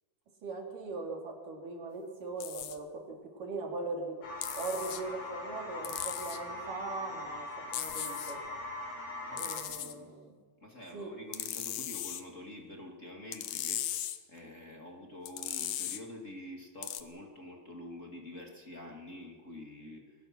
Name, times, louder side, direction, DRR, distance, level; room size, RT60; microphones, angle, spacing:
voice 1, 0.4-4.2 4.5-8.4 9.3-10.3 10.9-11.1, right 3 dB, 85° right, 1 dB, 4.8 m, -40 dB
sound 1, 2.4-2.8 4.4-5.0 5.8-6.4 7.7-8.4 9.4-9.9 11.3-12.2 13.3-14.2 15.3-16.0 16.8-17.0, left 12 dB, 90° left, 2.7 m, -37 dB
sound 2, 4.2-9.6, left 2 dB, 75° left, 5.8 m, -41 dB
voice 2, 9.3-10.1 10.6-20.3, left 1 dB, 25° left, 0 dB, 2.5 m, -47 dB
23.0 x 19.5 x 6.1 m, 1.5 s
omnidirectional pair, 3.7 m